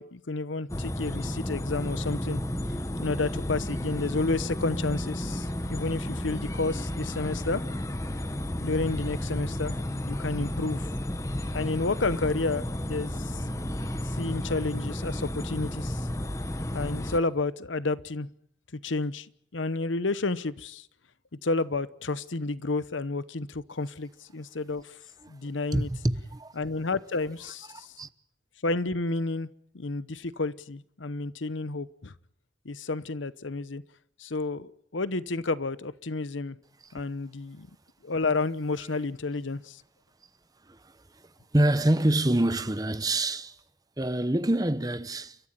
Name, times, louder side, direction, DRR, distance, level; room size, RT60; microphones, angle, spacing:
voice 1, 0.0-2.4 3.0-7.6 8.6-9.7 10.1-10.9 11.5-13.4 14.2-16.1 16.7-18.3 18.7-19.3 19.5-20.9 21.4-24.9 25.3-25.9 26.6-27.9 28.6-29.5 29.7-32.1 32.6-33.8 34.2-36.6 36.9-37.7 38.0-39.8, left 3 dB, 85° left, 1.0 m, -30 dB
sound 1, 0.7-17.2, left 1 dB, 15° left, 1.1 m, -32 dB
voice 2, 25.2-26.5 27.6-28.1 36.8-36.9 40.6-43.6 44.0-45.4, right 1 dB, 20° right, 0.9 m, -27 dB
30.0 x 14.0 x 8.9 m
head